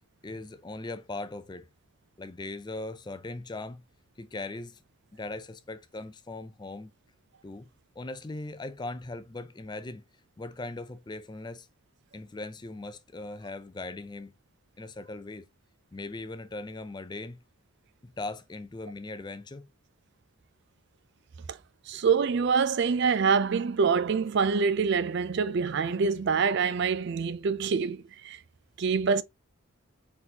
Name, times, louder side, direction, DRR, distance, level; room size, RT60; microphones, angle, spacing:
voice 1, 0.2-1.7 2.2-3.8 4.2-4.8 5.1-6.9 7.4-7.7 8.0-10.0 10.4-11.7 12.1-14.3 14.8-15.5 15.9-17.4 18.0-19.7, left 2 dB, 20° left, 0.4 m, -39 dB
voice 2, 21.9-28.4 28.8-29.2, right 5 dB, 50° right, 0.4 m, -25 dB
4.0 x 4.0 x 2.8 m
head